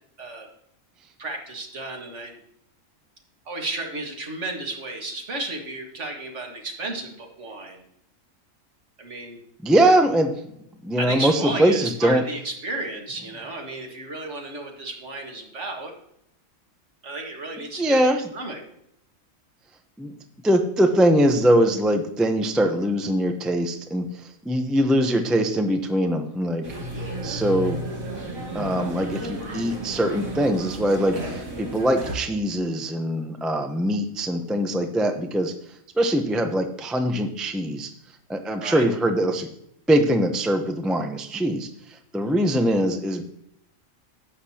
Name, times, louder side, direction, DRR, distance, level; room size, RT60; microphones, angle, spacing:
voice 1, 1.2-2.4 3.5-7.9 9.0-9.4 11.0-15.9 17.0-18.6 38.6-38.9, right 2 dB, 60° right, 1 dB, 2.1 m, -33 dB
voice 2, 9.6-10.4 10.8-12.2 17.8-18.3 20.0-20.1 20.4-24.0 24.4-26.7 27.2-27.8 28.5-35.5 36.0-37.9 38.3-39.5 39.9-41.7 42.1-43.2, right 1 dB, ahead, 5 dB, 0.5 m, -22 dB
sound 1, 26.6-32.1, right 1 dB, 85° right, 2.7 m, -33 dB
12.0 x 8.1 x 2.9 m, 0.75 s
omnidirectional pair, 1.4 m